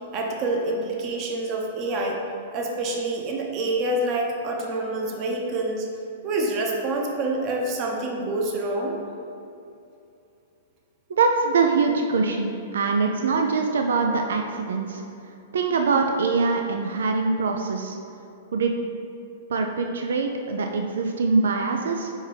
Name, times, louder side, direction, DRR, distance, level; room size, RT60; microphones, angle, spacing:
voice 1, 0.1-2.2 2.5-5.9 6.2-9.0, right 2 dB, 40° right, 0 dB, 1.0 m, -27 dB
voice 2, 11.1-15.0 15.5-18.0 18.5-18.7 19.5-22.1, right 4 dB, 80° right, 3 dB, 0.4 m, -23 dB
4.7 x 4.5 x 5.0 m, 2.7 s
hypercardioid pair, 120°, 0 cm